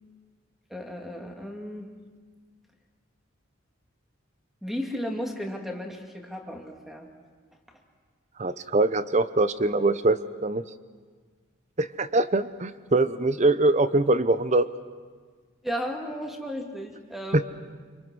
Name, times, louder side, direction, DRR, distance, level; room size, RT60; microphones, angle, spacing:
voice 1, 0.7-1.9 4.6-7.1 15.6-17.4, equal, ahead, 1 dB, 2.2 m, -34 dB
voice 2, 8.4-10.6 11.8-14.7 17.3-17.4, right 2 dB, 35° right, 13 dB, 0.7 m, -23 dB
26.0 x 25.0 x 6.2 m, 1.5 s
head